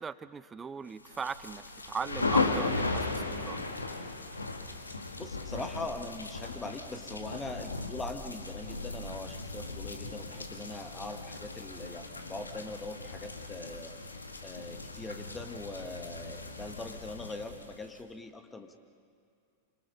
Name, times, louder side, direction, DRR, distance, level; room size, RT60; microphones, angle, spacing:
voice 1, 0.0-3.6, right 5 dB, 15° right, 15 dB, 0.8 m, -39 dB
sound 1, 1.0-18.0, left 3 dB, 80° left, 1.8 m, -37 dB
voice 2, 5.2-13.9 14.4-18.7, left 2 dB, 15° left, 6 dB, 1.6 m, -42 dB
29.5 x 26.5 x 5.6 m, 2.4 s
figure-of-eight pair, 90°, 0 cm